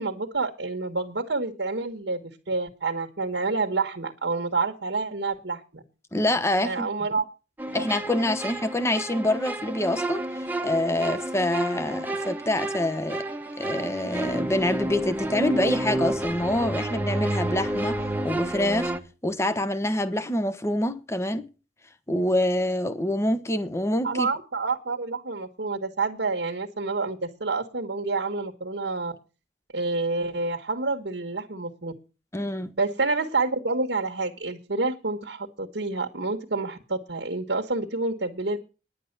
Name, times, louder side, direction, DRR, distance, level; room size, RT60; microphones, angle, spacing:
voice 1, 0.0-2.2 2.5-5.8 6.6-7.2 7.7-7.8 24.0-29.1 29.7-31.9 32.8-38.6, right 3 dB, 80° right, 1.5 m, -28 dB
voice 2, 6.1-6.9 7.7-10.3 10.6-13.3 13.6-18.9 19.2-21.5 22.1-24.3 32.3-32.7, left 1 dB, 15° left, 1.0 m, -26 dB
sound 1, 7.6-19.0, right 1 dB, 10° right, 1.1 m, -30 dB
10.5 x 9.4 x 6.7 m
head